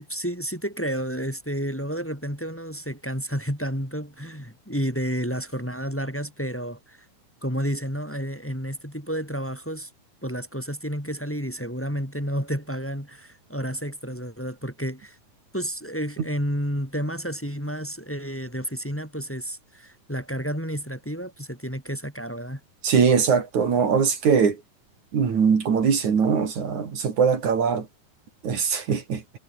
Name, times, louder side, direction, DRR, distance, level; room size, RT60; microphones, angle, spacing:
voice 1, 0.0-7.0 7.4-9.9 10.2-15.2 15.5-22.6, equal, 5° left, 4.5 m, -31 dB
voice 2, 22.8-24.6 25.1-27.9 28.4-29.2, right 6 dB, 75° right, 4.7 m, -21 dB
omnidirectional pair, 3.4 m